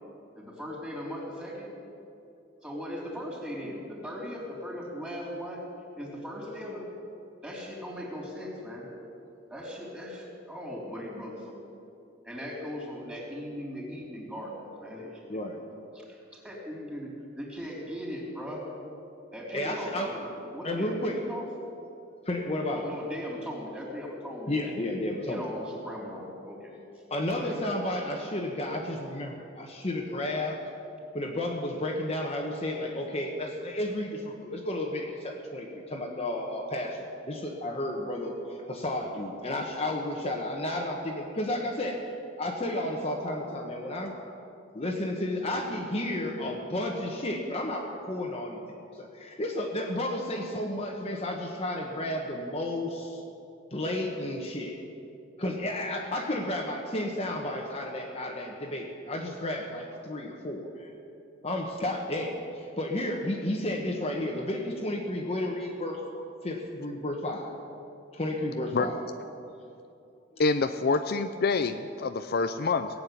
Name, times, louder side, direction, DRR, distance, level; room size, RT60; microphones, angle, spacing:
voice 1, 0.4-1.7 2.6-5.6 6.0-6.8 7.4-8.8 9.5-11.6 12.2-14.5 14.8-15.4 15.9-18.6 19.3-21.5 22.7-24.9 25.3-26.7 27.3-27.7, equal, 5° right, -4 dB, 3.9 m, -38 dB
voice 2, 19.5-20.1 20.6-21.2 22.2-22.9 24.5-25.4 27.1-30.6 31.1-42.1 42.4-44.1 44.7-48.6 49.0-53.2 53.7-54.8 55.4-60.9 61.4-67.5 68.1-69.0, left 1 dB, 35° left, 0 dB, 1.3 m, -32 dB
voice 3, 70.4-72.9, left 4 dB, 55° left, 9 dB, 0.5 m, -26 dB
17.5 x 7.8 x 9.4 m, 2.6 s
head